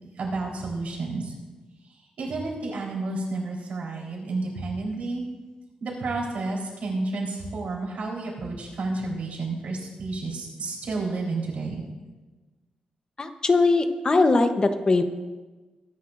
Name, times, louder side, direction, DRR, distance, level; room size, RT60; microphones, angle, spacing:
voice 1, 0.2-1.3 1.8-5.2 5.8-11.8, right 3 dB, 75° right, -3 dB, 3.8 m, -31 dB
voice 2, 13.2-15.0, left 3 dB, 30° left, 7 dB, 0.8 m, -21 dB
22.0 x 9.9 x 2.5 m, 1.2 s
wide cardioid pair, 140°, 2 cm